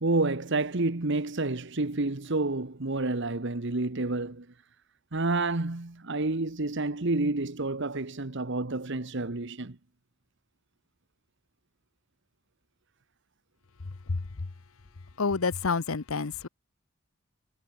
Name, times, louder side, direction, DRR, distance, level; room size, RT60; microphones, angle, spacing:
voice 1, 0.0-4.5 5.1-9.8, right 2 dB, 60° right, 1.3 m, -29 dB
voice 2, 15.2-16.5, left 4 dB, 85° left, 0.9 m, -28 dB
head